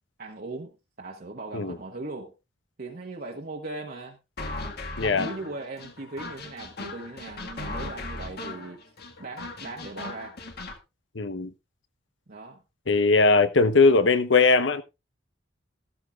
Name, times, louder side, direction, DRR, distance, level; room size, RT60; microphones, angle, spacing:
voice 1, 0.2-2.3 2.8-4.2 5.0-8.8 9.2-10.4 12.3-12.6, right 2 dB, 50° right, 1.3 m, -38 dB
sound 1, 4.4-10.8, left 2 dB, 55° left, 1.6 m, -38 dB
voice 2, 5.0-5.3 11.1-11.5 12.9-14.8, left 3 dB, 70° left, 0.9 m, -20 dB
14.0 x 13.0 x 2.4 m
head